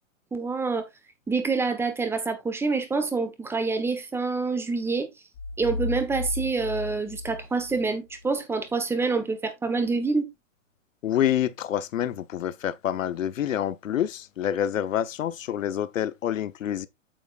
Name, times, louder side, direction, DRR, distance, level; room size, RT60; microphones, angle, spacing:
voice 1, 0.3-0.9 1.3-5.1 5.6-10.3, right 4 dB, 5° right, 1.2 m, -27 dB
sound 1, 5.3-8.2, left 2 dB, 40° left, 2.0 m, -34 dB
voice 2, 11.0-16.9, left 10 dB, 80° left, 1.0 m, -27 dB
8.8 x 7.3 x 2.4 m
hypercardioid pair, 145°, 39 cm